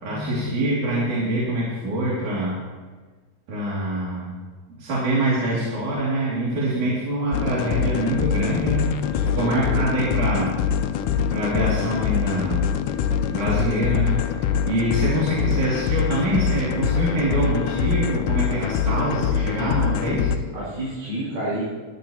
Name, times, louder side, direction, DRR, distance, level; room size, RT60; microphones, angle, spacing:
voice 1, 0.0-2.6 3.5-4.4 4.7-8.9 9.4-10.5 11.3-12.7 13.3-20.4, right 1 dB, 70° right, -7 dB, 3.8 m, -25 dB
voice 2, 6.6-7.0 9.2-9.9 20.5-21.6, right 1 dB, 90° right, -9 dB, 6.7 m, -31 dB
sound 1, 7.3-20.4, left 8 dB, 85° left, 2.2 m, -24 dB
20.5 x 11.5 x 2.8 m, 1.4 s
omnidirectional pair, 3.7 m